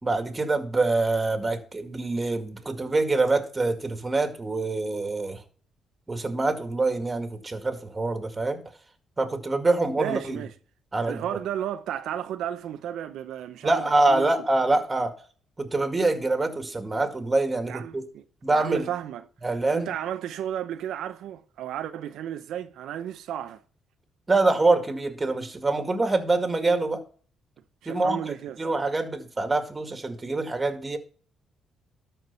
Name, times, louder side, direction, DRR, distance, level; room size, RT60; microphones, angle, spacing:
voice 1, 0.0-5.4 6.1-8.6 9.2-10.4 10.9-11.2 13.6-15.1 15.6-18.0 18.4-18.9 19.4-19.9 24.3-27.0 27.9-31.0, right 2 dB, 20° right, 2.0 m, -25 dB
voice 2, 10.0-10.5 11.1-14.3 17.7-18.2 18.5-19.2 19.7-23.6 27.8-28.6, right 10 dB, 80° right, 0.6 m, -33 dB
13.0 x 4.7 x 5.5 m
cardioid pair, 90°, 0 cm